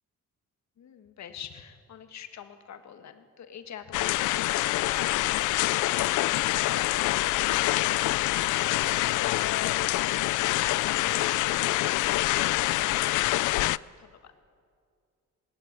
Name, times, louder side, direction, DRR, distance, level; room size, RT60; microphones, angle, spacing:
voice 1, 0.8-13.2 13.4-14.3, left 8 dB, 65° left, 8 dB, 1.8 m, -44 dB
sound 1, 3.9-13.8, left 18 dB, 80° left, 0.5 m, -26 dB
20.0 x 19.0 x 9.8 m, 2.2 s
cardioid pair, 90°, 30 cm